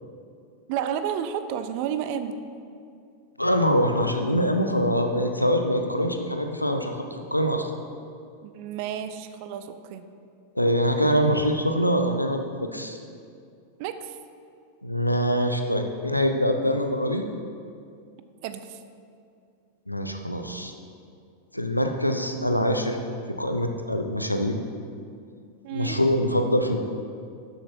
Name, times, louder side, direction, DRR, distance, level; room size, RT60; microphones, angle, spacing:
voice 1, 0.7-2.4 8.4-10.0 13.8-14.2 18.4-18.8 25.6-26.0, right 9 dB, 45° right, 10 dB, 0.6 m, -31 dB
voice 2, 3.4-7.7 10.6-13.0 14.8-17.2 19.9-20.7 21.5-23.0 23.4-24.6 25.7-26.8, equal, 90° left, 5 dB, 0.8 m, -24 dB
12.5 x 7.4 x 4.4 m, 2.4 s
figure-of-eight pair, 90°, 0 cm